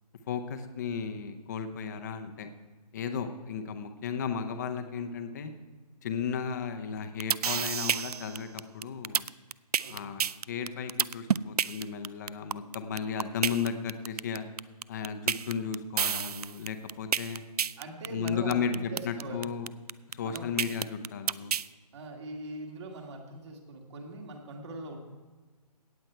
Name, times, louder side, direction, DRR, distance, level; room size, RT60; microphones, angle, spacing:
voice 1, 0.3-2.5 2.9-5.5 6.0-9.2 9.9-14.5 14.9-17.4 18.1-19.7 20.1-21.5, left 6 dB, 25° left, 8 dB, 0.7 m, -34 dB
sound 1, 7.0-21.7, right 8 dB, 65° right, 0.4 m, -29 dB
voice 2, 17.8-19.6 20.2-20.5 21.9-25.0, right 2 dB, 45° right, 1 dB, 2.1 m, -42 dB
17.5 x 7.9 x 4.5 m, 1.3 s
hypercardioid pair, 160°, 21 cm